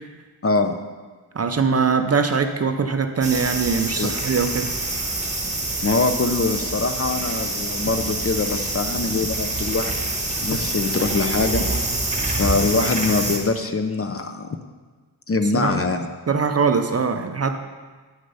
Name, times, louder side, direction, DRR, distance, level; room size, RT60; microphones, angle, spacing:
voice 1, 0.4-0.7 4.0-4.1 5.8-10.1 10.4-11.7 12.4-14.5 15.3-16.1, left 3 dB, 35° left, 7 dB, 0.5 m, -23 dB
voice 2, 1.4-4.7 15.5-15.8 16.3-17.7, right 5 dB, 35° right, 7 dB, 0.4 m, -22 dB
sound 1, 3.2-13.4, right 2 dB, 15° right, 1.2 m, -26 dB
8.8 x 6.4 x 5.5 m, 1.4 s
wide cardioid pair, 175°, 43 cm